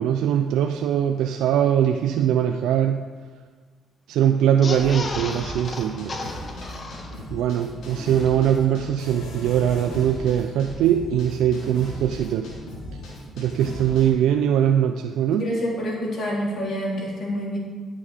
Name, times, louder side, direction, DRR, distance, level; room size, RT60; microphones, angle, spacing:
voice 1, 0.0-3.0 4.1-6.2 7.3-12.5 13.4-15.5, right 9 dB, 90° right, 7 dB, 0.4 m, -21 dB
sound 1, 4.5-7.5 7.8-7.9 8.2-8.3, left 3 dB, 40° left, 1.4 m, -34 dB
sound 2, 4.7-14.1, left 1 dB, 85° left, 3.4 m, -37 dB
voice 2, 15.3-17.6, equal, 55° left, -4 dB, 4.0 m, -27 dB
13.5 x 7.6 x 5.0 m, 1.5 s
cardioid pair, 90°, 0 cm